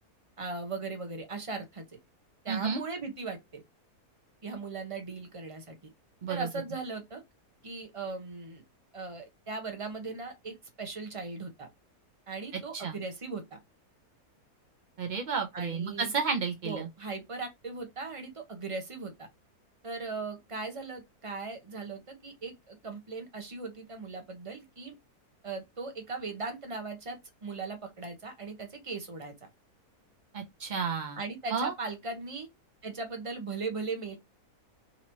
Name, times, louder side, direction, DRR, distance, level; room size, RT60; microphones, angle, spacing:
voice 1, 0.4-1.8 2.4-3.6 4.4-5.8 6.3-7.2 7.6-8.6 8.9-11.7 12.3-13.6 15.5-16.1 16.6-19.3 19.8-25.0 25.4-29.3 31.2-32.5 32.8-34.2, right 4 dB, 25° right, 0.8 m, -38 dB
voice 2, 2.5-2.8 6.2-6.5 12.7-13.0 15.0-16.9 30.3-31.2 31.5-31.7, right 5 dB, 75° right, 0.4 m, -32 dB
3.9 x 3.0 x 2.7 m
omnidirectional pair, 1.7 m